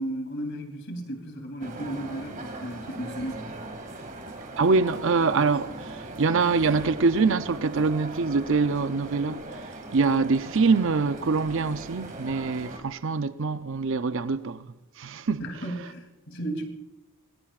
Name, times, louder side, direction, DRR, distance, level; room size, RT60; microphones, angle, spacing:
voice 1, 0.0-3.5 15.4-16.6, right 1 dB, 55° left, 3.0 m, -34 dB
sound 1, 1.6-12.8, right 2 dB, 35° right, 2.2 m, -39 dB
voice 2, 4.6-14.7 15.0-15.4, right 4 dB, 55° right, 0.6 m, -24 dB
25.5 x 20.5 x 2.5 m
head